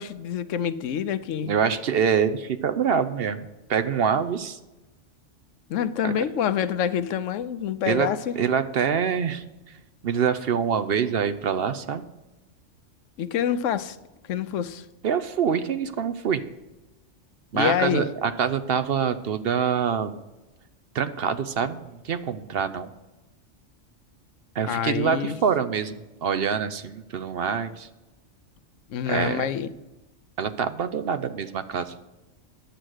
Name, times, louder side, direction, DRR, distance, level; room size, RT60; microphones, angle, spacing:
voice 1, 0.0-1.5 5.7-8.3 13.2-14.0 14.3-14.8 17.5-18.1 24.6-25.4 28.9-29.7, left 8 dB, 85° left, 13 dB, 1.0 m, -26 dB
voice 2, 1.4-4.6 6.0-6.1 7.9-8.1 8.4-9.4 10.0-12.0 15.0-16.4 17.5-20.1 20.9-22.9 24.5-27.9 29.1-29.4 30.4-32.0, right 7 dB, 60° right, 11 dB, 0.8 m, -25 dB
10.5 x 7.6 x 6.3 m, 1.0 s
omnidirectional pair, 1.3 m